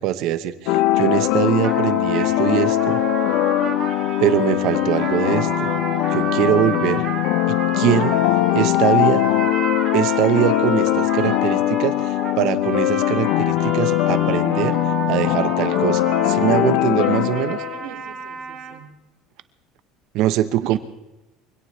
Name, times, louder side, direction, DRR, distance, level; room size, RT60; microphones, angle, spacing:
voice 1, 0.0-3.0 4.2-5.7 6.1-7.0 7.5-8.2 8.5-9.2 9.9-14.8 15.1-17.6 20.1-20.8, right 13 dB, 55° right, 11 dB, 1.1 m, -22 dB
sound 1, 0.7-17.9, left 15 dB, 65° left, 0.5 m, -21 dB
sound 2, 1.6-18.8, right 6 dB, 35° right, 2.9 m, -31 dB
voice 2, 17.8-19.0 20.6-20.8, right 13 dB, 90° right, 5 dB, 2.2 m, -39 dB
24.5 x 17.0 x 3.3 m, 1.0 s
cardioid pair, 160°, 0 cm